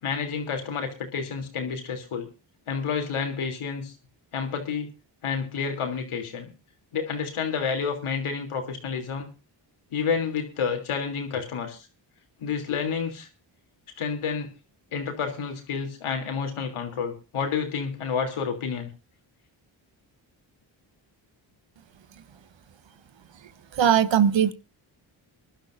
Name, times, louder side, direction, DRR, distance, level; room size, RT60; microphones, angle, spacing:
voice 1, 0.0-2.3 2.7-3.9 4.3-4.9 5.2-6.5 6.9-9.3 9.9-11.9 12.4-13.3 14.0-14.5 14.9-18.9, left 6 dB, 80° left, 3.3 m, -29 dB
voice 2, 23.8-24.5, right 9 dB, 65° right, 1.2 m, -19 dB
23.5 x 11.5 x 2.6 m
cardioid pair, 55°, 49 cm